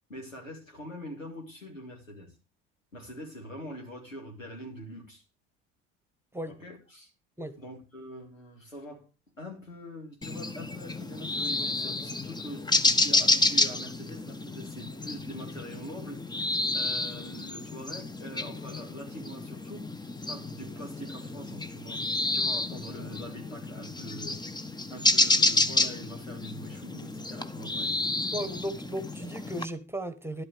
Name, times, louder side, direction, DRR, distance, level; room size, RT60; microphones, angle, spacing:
voice 1, 0.1-2.3 2.9-5.2 6.5-7.1 7.6-9.1 9.4-12.7 13.0-22.0 22.3-24.4 24.9-28.1 28.4-28.5, equal, 85° left, 3.3 m, -44 dB
sound 1, 10.2-29.7, left 2 dB, 10° left, 1.1 m, -30 dB
voice 2, 28.3-30.4, right 1 dB, 5° right, 1.5 m, -35 dB
12.0 x 12.0 x 3.4 m
figure-of-eight pair, 55°, 38 cm